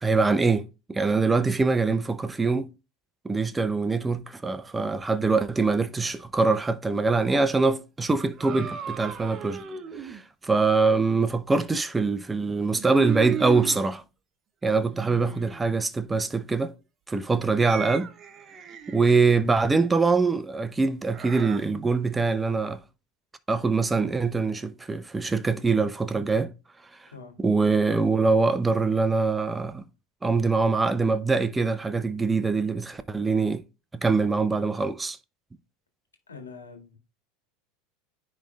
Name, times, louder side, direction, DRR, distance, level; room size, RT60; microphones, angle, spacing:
voice 1, 0.0-2.7 3.2-9.6 10.0-14.0 14.6-16.7 17.1-18.1 18.9-22.8 23.5-26.5 27.4-29.8 30.2-33.6 34.0-35.2, right 4 dB, 15° right, 0.6 m, -24 dB
sound 1, 8.3-10.2 12.7-13.8 14.7-15.6 17.5-19.1 21.1-21.6, right 8 dB, 35° right, 1.0 m, -36 dB
voice 2, 36.3-37.0, left 5 dB, 90° left, 1.7 m, -43 dB
10.0 x 3.4 x 3.2 m
hypercardioid pair, 85°, 0 cm